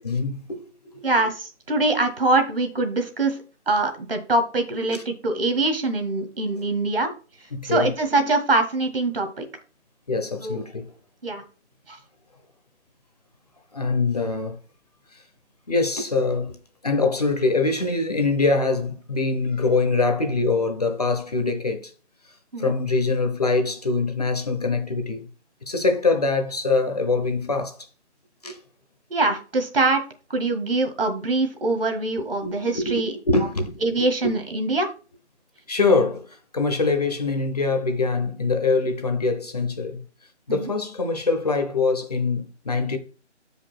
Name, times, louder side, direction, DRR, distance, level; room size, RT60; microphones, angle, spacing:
voice 1, 0.0-1.1 4.9-5.0 7.5-7.9 10.1-10.9 13.7-14.6 15.1-15.2 15.7-16.6 16.8-21.9 22.6-25.3 25.7-27.8 28.4-28.6 32.4-33.8 34.2-34.3 35.7-40.0 40.5-43.0, left 3 dB, 35° left, 0.9 m, -24 dB
voice 2, 1.0-7.1 7.6-9.4 10.4-10.6 11.2-11.4 11.9-12.0 22.5-22.7 29.1-33.1 33.8-34.9 40.5-40.7, right 2 dB, 50° right, 1.7 m, -23 dB
6.8 x 5.2 x 4.3 m
figure-of-eight pair, 165°, 35 cm